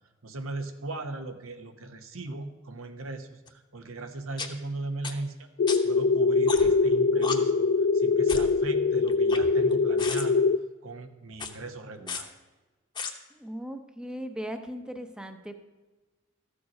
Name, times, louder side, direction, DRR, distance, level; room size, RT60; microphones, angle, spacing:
voice 1, 0.2-5.5 5.8-7.7 7.9-10.4 10.8-12.3, right 2 dB, 90° right, 7 dB, 1.1 m, -38 dB
sound 1, 3.5-3.6 4.4-4.5 5.0-5.1 5.7-5.8 6.5-6.8 7.2-7.4 8.3-8.5 9.1-9.7 10.0-10.2 11.3-11.5 12.1-12.2 13.0-13.1, left 5 dB, 25° left, 0.9 m, -34 dB
sound 2, 5.6-10.6, left 4 dB, 55° left, 0.3 m, -23 dB
voice 2, 13.3-15.6, equal, 5° right, 7 dB, 0.7 m, -38 dB
13.5 x 7.1 x 5.3 m, 1.2 s
head